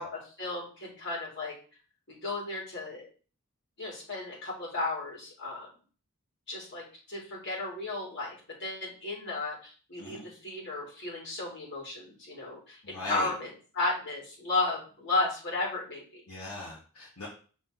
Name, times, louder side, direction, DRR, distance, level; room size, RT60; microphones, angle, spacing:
voice 1, 0.0-1.5 2.1-3.1 3.8-5.7 6.5-16.2, left 2 dB, 55° left, -4 dB, 3.5 m, -34 dB
voice 2, 12.8-13.3 16.3-17.3, left 2 dB, 70° left, -6 dB, 1.9 m, -39 dB
6.0 x 4.1 x 4.0 m, 0.38 s
head